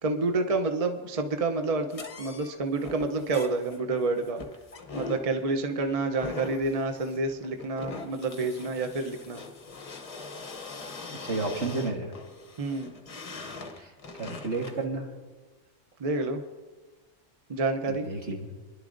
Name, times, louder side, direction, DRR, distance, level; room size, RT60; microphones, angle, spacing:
voice 1, 0.0-4.4 4.9-9.4 12.6-12.9 16.0-16.4 17.5-18.1, right 3 dB, 35° right, 6 dB, 0.6 m, -28 dB
sound 1, 1.9-14.8, left 4 dB, 35° left, 0.8 m, -42 dB
voice 2, 11.2-12.1 13.7-13.9 14.2-15.1 17.9-18.6, right 3 dB, 65° right, 0 dB, 1.9 m, -31 dB
24.0 x 11.0 x 2.6 m, 1.3 s
omnidirectional pair, 1.3 m